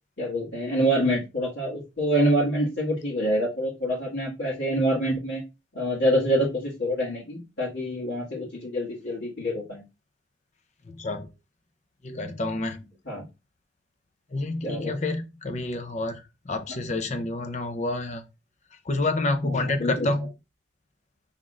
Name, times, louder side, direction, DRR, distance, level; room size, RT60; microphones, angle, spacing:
voice 1, 0.2-5.4 5.7-9.8 13.0-13.2 14.6-14.9 16.7-16.8 19.4-20.3, equal, 70° left, 2.0 m, -26 dB
voice 2, 12.0-12.8 14.3-16.2 16.5-18.2 18.9-20.3, left 2 dB, 40° left, 0.6 m, -28 dB
5.9 x 3.6 x 2.4 m
head